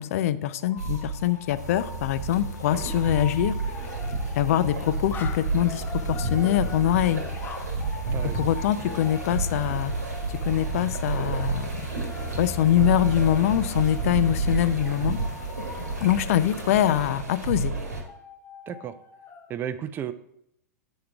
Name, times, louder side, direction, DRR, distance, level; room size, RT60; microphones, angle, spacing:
voice 1, 0.0-3.6 4.4-7.2 8.2-11.8 12.4-15.2 16.0-17.7, left 12 dB, 60° left, 14 dB, 0.4 m, -24 dB
sound 1, 0.6-19.5, left 5 dB, 20° left, 0.6 m, -44 dB
sound 2, 0.8-18.0, right 3 dB, 85° right, 1.4 m, -31 dB
sound 3, 1.5-17.1, right 1 dB, 85° left, 1.0 m, -41 dB
voice 2, 19.5-20.1, right 9 dB, 25° right, 12 dB, 0.4 m, -33 dB
7.1 x 3.7 x 4.5 m, 0.76 s
hypercardioid pair, 110°, 9 cm